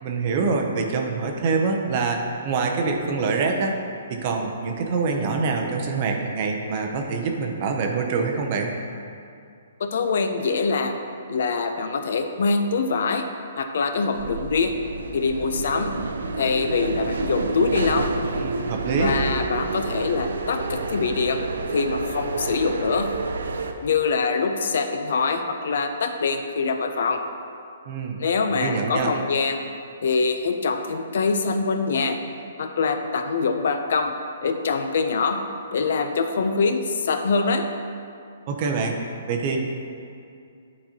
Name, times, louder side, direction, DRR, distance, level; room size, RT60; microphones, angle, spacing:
voice 1, 0.0-3.8 4.1-8.7 18.3-19.2 27.8-28.2 28.5-29.1 38.5-39.0 39.3-39.6, right 4 dB, 30° right, 2 dB, 0.6 m, -25 dB
voice 2, 9.8-10.9 11.3-13.3 13.6-14.8 15.1-15.9 16.4-18.1 19.0-21.4 21.7-23.1 23.8-27.2 28.2-29.6 30.0-32.2 32.6-34.1 34.4-35.4 35.7-37.7, left 4 dB, 60° left, 6 dB, 0.5 m, -24 dB
sound 1, 14.1-23.7, right 3 dB, 85° right, 0.5 m, -29 dB
10.0 x 4.1 x 2.9 m, 2.4 s
hypercardioid pair, 165°, 0 cm